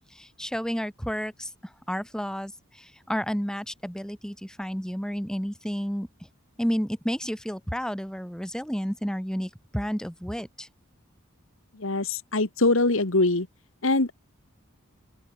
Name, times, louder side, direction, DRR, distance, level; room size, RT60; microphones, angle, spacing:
voice 1, 0.1-1.5 1.9-6.1 6.6-10.7, equal, 5° left, 3.6 m, -31 dB
voice 2, 11.8-13.5 13.8-14.1, left 2 dB, 70° left, 1.8 m, -23 dB
open air
head